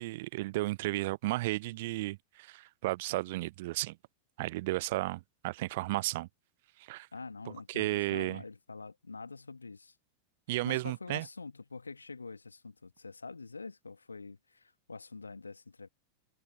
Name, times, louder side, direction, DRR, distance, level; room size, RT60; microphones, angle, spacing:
voice 1, 0.0-4.0 4.4-6.3 6.8-7.1 7.7-8.4 10.5-11.3, right 19 dB, 50° right, 0.8 m, -33 dB
voice 2, 7.1-10.0 10.6-15.9, left 4 dB, 80° left, 1.9 m, -45 dB
figure-of-eight pair, 90°, 0 cm